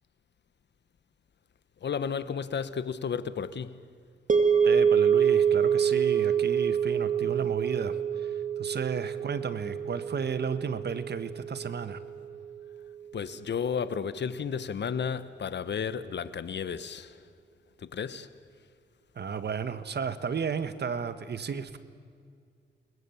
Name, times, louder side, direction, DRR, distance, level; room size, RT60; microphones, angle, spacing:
voice 1, 1.8-3.8 13.1-17.2 17.8-18.3, left 7 dB, 65° left, 1.2 m, -33 dB
sound 1, 4.3-12.6, right 7 dB, 40° right, 2.2 m, -26 dB
voice 2, 4.6-12.0 19.1-21.8, right 6 dB, 60° right, 1.5 m, -33 dB
29.0 x 21.0 x 7.2 m
cardioid pair, 70°, 19 cm